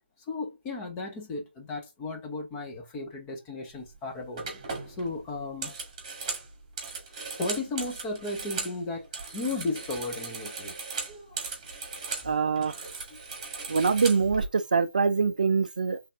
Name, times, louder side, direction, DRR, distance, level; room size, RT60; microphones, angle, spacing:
voice 1, 0.3-4.4 4.9-5.7 7.4-11.4 13.1-13.2, left 2 dB, 10° left, 0.8 m, -35 dB
sound 1, 3.7-4.0 4.4-8.8 9.0-12.3 12.6-14.5, right 4 dB, 20° right, 1.9 m, -37 dB
voice 2, 12.2-12.8 13.7-16.0, right 5 dB, 45° right, 0.4 m, -24 dB
4.1 x 3.4 x 3.6 m
figure-of-eight pair, 150°, 6 cm